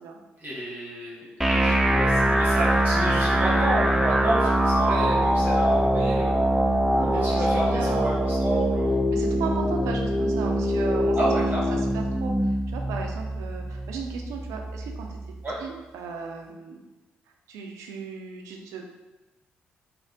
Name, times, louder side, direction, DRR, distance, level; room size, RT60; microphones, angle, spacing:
voice 1, 0.4-6.5 7.1-9.0 11.1-11.8 15.4-15.6, right 1 dB, 20° right, -6 dB, 1.0 m, -30 dB
sound 1, 1.4-15.4, right 1 dB, 5° right, 0.3 m, -23 dB
voice 2, 6.8-8.4 9.1-11.2 11.7-15.2 15.6-16.8 17.5-18.8, right 4 dB, 75° right, 2 dB, 0.4 m, -36 dB
3.3 x 2.1 x 2.6 m, 1.1 s
hypercardioid pair, 45°, 5 cm